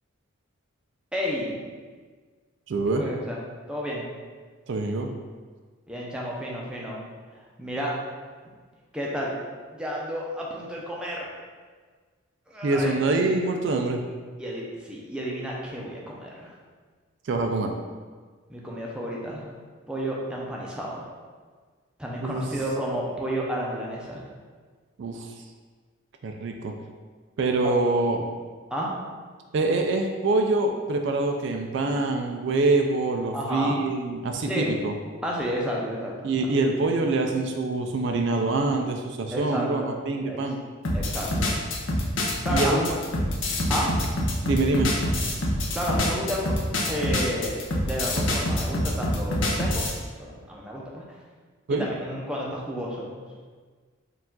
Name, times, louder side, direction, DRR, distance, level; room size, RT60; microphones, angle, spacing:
voice 1, 1.1-1.7 2.9-3.4 3.7-4.0 5.9-7.0 7.3-8.0 8.9-9.4 9.7-11.3 12.5-12.9 14.4-16.5 18.5-19.5 19.9-21.1 22.0-24.2 27.6-27.8 28.7-28.9 33.3-33.8 34.5-34.7 35.2-36.3 39.3-39.9 40.2-40.4 40.9-41.5 42.4-42.8 43.7-43.9 45.7-46.6 46.8-49.8 50.2-51.2 51.8-53.2, equal, 5° right, -4 dB, 0.5 m, -31 dB
voice 2, 2.7-3.1 4.7-5.1 12.6-14.0 17.2-17.7 22.2-22.6 25.0-25.4 26.2-26.7 27.4-28.2 29.5-34.9 36.2-40.6 42.5-43.0 44.4-44.9 51.7-51.9, right 2 dB, 55° right, 3 dB, 0.3 m, -25 dB
sound 1, 40.8-50.0, left 1 dB, 65° left, 0.6 m, -26 dB
4.6 x 2.4 x 3.7 m, 1.5 s
head